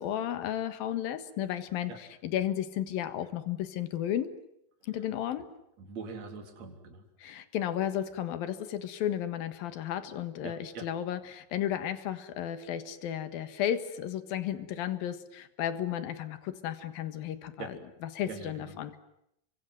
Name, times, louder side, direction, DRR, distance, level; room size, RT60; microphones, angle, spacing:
voice 1, 0.0-4.4 4.8-5.5 7.2-19.0, left 10 dB, 85° left, 11 dB, 3.4 m, -33 dB
voice 2, 5.9-7.0 10.4-10.9 17.6-17.7 18.3-18.7, right 5 dB, 50° right, 3 dB, 4.6 m, -42 dB
29.5 x 25.0 x 7.8 m, 0.78 s
omnidirectional pair, 4.1 m